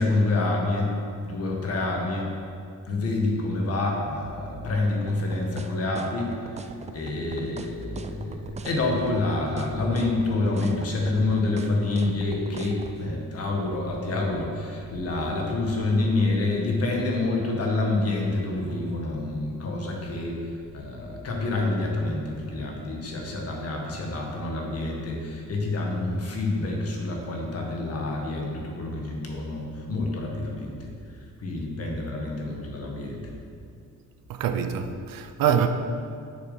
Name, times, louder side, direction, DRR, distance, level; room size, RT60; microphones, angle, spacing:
voice 1, 0.0-2.3 2.8-30.9 31.4-33.4, left 2 dB, 45° left, 1.7 m, -27 dB
sound 1, 5.1-13.0, right 5 dB, 20° right, 0.3 m, -39 dB
voice 2, 34.3-35.7, right 8 dB, 85° right, 0.8 m, -25 dB
8.0 x 6.8 x 5.6 m
cardioid pair, 155°, 33 cm